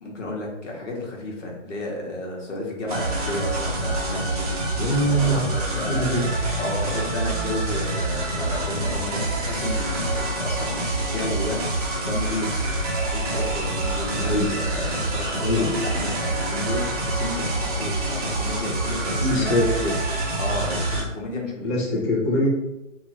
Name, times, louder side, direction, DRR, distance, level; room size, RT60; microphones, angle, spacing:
voice 1, 0.0-6.3 6.6-12.7 13.0-19.7 20.4-21.8, left 2 dB, 65° left, -2 dB, 1.2 m, -32 dB
sound 1, 2.9-21.0, right 2 dB, 30° right, 0.6 m, -26 dB
voice 2, 4.7-5.4 5.9-6.2 14.1-14.5 15.4-15.7 19.2-19.9 21.6-22.5, equal, 20° left, -5 dB, 0.6 m, -23 dB
2.9 x 2.3 x 2.9 m, 0.95 s
figure-of-eight pair, 145°, 39 cm